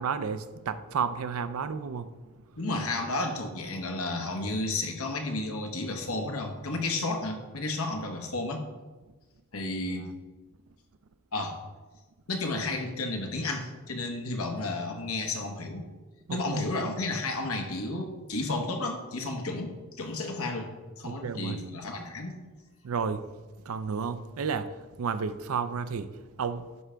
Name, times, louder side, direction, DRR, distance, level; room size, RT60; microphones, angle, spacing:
voice 1, 0.0-2.1 16.3-16.7 21.0-21.6 22.8-23.2 23.7-24.7 25.0-26.1 26.4-26.7, right 6 dB, 80° right, 12 dB, 0.5 m, -31 dB
voice 2, 2.6-8.6 9.5-10.1 11.3-11.6 12.3-15.9 16.3-22.3, left 2 dB, 85° left, 3 dB, 1.2 m, -32 dB
11.0 x 5.0 x 3.4 m, 1.3 s
head